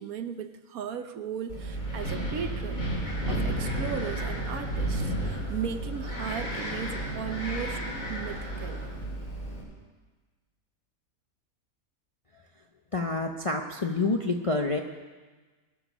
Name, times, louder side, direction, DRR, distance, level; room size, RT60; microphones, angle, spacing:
voice 1, 0.0-2.9 3.2-7.8 8.1-8.8, right 8 dB, 70° right, 9 dB, 1.2 m, -36 dB
Wind, 1.5-9.6, right 1 dB, 60° left, 3.6 m, -32 dB
voice 2, 12.9-14.8, left 3 dB, 35° left, 2 dB, 0.5 m, -28 dB
21.0 x 7.1 x 6.1 m, 1.3 s
omnidirectional pair, 1.6 m